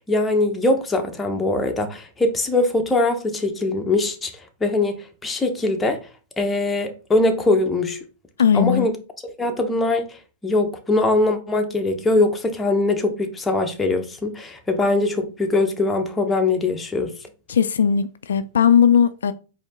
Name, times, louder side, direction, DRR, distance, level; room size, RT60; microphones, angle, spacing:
voice 1, 0.1-4.3 4.6-6.0 6.4-8.0 8.5-8.9 9.2-10.1 10.4-17.1, left 2 dB, 15° left, 0.9 m, -21 dB
voice 2, 8.4-8.9 17.5-19.3, left 8 dB, 80° left, 0.3 m, -17 dB
4.3 x 2.8 x 3.6 m
hypercardioid pair, 115°, 0 cm